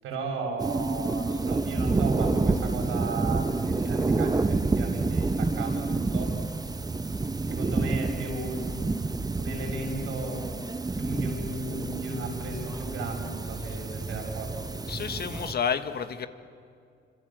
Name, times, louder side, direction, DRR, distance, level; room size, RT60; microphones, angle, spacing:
voice 1, 0.0-6.3 7.5-10.4 11.0-14.6, right 3 dB, 90° right, 1 dB, 7.6 m, -35 dB
sound 1, 0.6-15.5, right 3 dB, 20° right, 1.0 m, -29 dB
voice 2, 14.9-16.3, left 7 dB, 55° left, 9 dB, 1.7 m, -30 dB
27.0 x 26.5 x 7.8 m, 2.3 s
cardioid pair, 90°, 20 cm